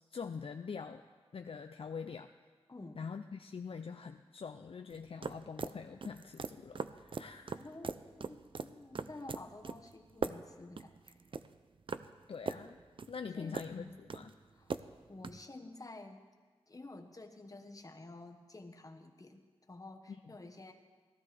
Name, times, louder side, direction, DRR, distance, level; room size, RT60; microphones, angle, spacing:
voice 1, 0.1-1.0 1.3-2.3 2.9-7.6 12.3-12.8 13.1-14.3, left 5 dB, 60° left, 6 dB, 0.4 m, -44 dB
voice 2, 2.7-3.1 7.5-11.2 13.4-14.1 14.5-14.7 15.1-16.2 16.7-19.4 19.7-20.7, left 2 dB, 35° left, 4 dB, 1.1 m, -51 dB
sound 1, 4.9-15.4, right 4 dB, 55° right, 0.4 m, -42 dB
17.5 x 13.0 x 3.4 m, 1.4 s
wide cardioid pair, 70°, 11 cm